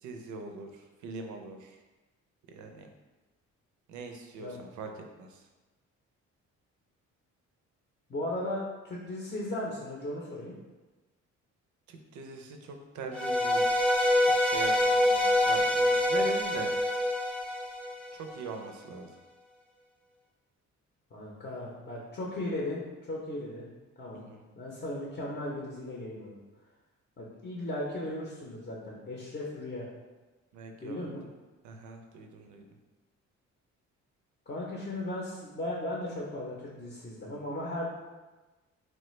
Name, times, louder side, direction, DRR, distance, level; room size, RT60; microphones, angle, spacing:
voice 1, 0.0-1.8 2.5-2.9 3.9-4.9 5.2-5.4 11.9-14.1 14.4-16.7 18.1-19.1 24.1-24.4 30.5-31.1 31.6-32.6, right 4 dB, 75° right, 4 dB, 0.5 m, -42 dB
voice 2, 8.1-10.5 21.1-23.7 24.0-24.3 24.6-26.4 27.2-29.9 30.8-31.2 34.5-37.9, left 1 dB, 30° left, -4 dB, 0.6 m, -36 dB
sound 1, 13.1-18.3, left 1 dB, 5° left, 0.8 m, -26 dB
3.1 x 2.1 x 3.1 m, 1.2 s
cardioid pair, 90°, 30 cm